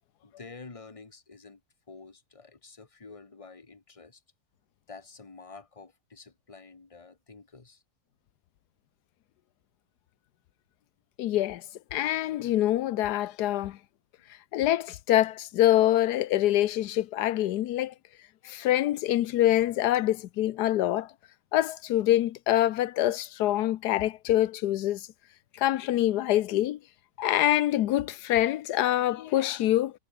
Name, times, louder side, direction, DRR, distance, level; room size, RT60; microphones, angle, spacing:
voice 1, 0.2-1.6 1.9-4.2 4.9-7.8, left 4 dB, 20° left, 1.7 m, -49 dB
voice 2, 11.2-11.6 11.9-13.8 14.5-17.9 18.4-21.1 21.5-25.1 25.5-26.8 27.2-29.9, left 13 dB, 90° left, 1.3 m, -25 dB
omnidirectional pair, 1.7 m